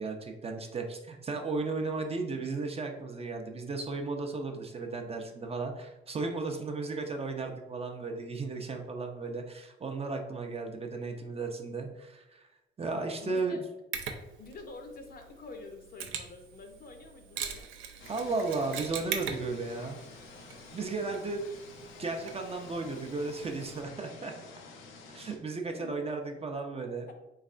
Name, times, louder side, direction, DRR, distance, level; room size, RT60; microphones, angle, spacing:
voice 1, 0.0-12.5 12.8-13.6 18.1-20.0 20.7-21.4 22.0-24.3 25.1-27.1, right 3 dB, 30° right, 3 dB, 0.5 m, -35 dB
voice 2, 13.2-13.6 14.4-17.7 25.7-26.2 27.1-27.2, left 3 dB, 50° left, 4 dB, 0.6 m, -47 dB
Mechanisms, 13.9-23.8, right 7 dB, 85° right, 0.5 m, -42 dB
sound 1, 18.0-25.4, left 4 dB, 90° left, 0.5 m, -50 dB
3.5 x 3.2 x 2.5 m, 0.99 s
cardioid pair, 90°, 20 cm